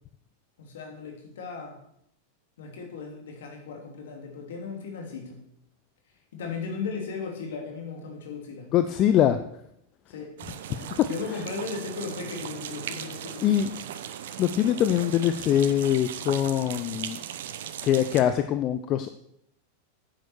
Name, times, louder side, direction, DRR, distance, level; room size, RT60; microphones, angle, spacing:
voice 1, 0.6-1.8 2.6-5.4 6.3-8.7 10.1-10.4 11.1-13.5, left 5 dB, 60° left, 2 dB, 3.0 m, -36 dB
voice 2, 8.7-9.4 10.7-11.1 13.4-13.7 14.4-17.2 17.8-19.1, left 10 dB, 35° left, 10 dB, 0.6 m, -23 dB
sound 1, 10.4-18.2, right 10 dB, 55° right, 0.8 m, -38 dB
9.6 x 7.8 x 6.3 m, 0.74 s
figure-of-eight pair, 90°, 0 cm